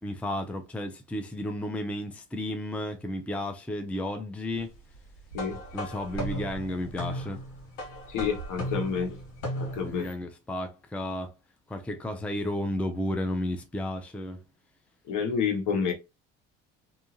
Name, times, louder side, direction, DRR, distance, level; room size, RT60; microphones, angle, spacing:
voice 1, 0.0-4.8 5.7-7.4 9.8-11.3 11.7-14.4, left 1 dB, 5° left, 0.5 m, -33 dB
sound 1, 5.3-10.0, equal, 85° left, 1.4 m, -36 dB
voice 2, 8.1-9.2 9.6-10.1 15.1-15.9, left 6 dB, 65° left, 1.1 m, -29 dB
2.7 x 2.4 x 2.8 m
supercardioid pair, 80°, 34 cm